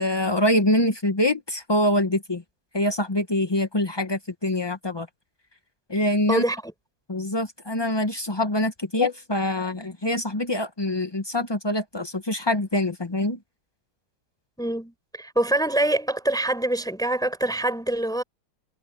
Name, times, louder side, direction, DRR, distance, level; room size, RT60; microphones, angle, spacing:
voice 1, 0.0-2.4 2.7-5.1 5.9-6.4 7.1-13.4, left 1 dB, 45° left, 0.3 m, -24 dB
voice 2, 6.3-6.7 14.6-18.2, right 1 dB, ahead, 4.4 m, -25 dB
omnidirectional pair, 2.4 m